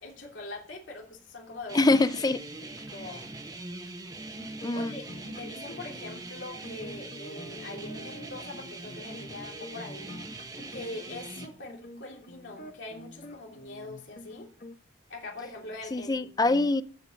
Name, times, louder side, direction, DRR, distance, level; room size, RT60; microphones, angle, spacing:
voice 1, 0.0-1.9 2.6-3.3 4.4-10.2 10.7-14.5 15.1-16.1 16.4-16.6, left 2 dB, 80° left, 3.0 m, -43 dB
voice 2, 1.7-2.4 4.6-4.9 15.9-16.8, left 2 dB, 20° left, 0.4 m, -24 dB
sound 1, 1.7-11.5, right 2 dB, 20° right, 1.2 m, -42 dB
sound 2, 4.4-14.8, left 1 dB, 45° left, 1.2 m, -47 dB
15.0 x 5.3 x 5.3 m
head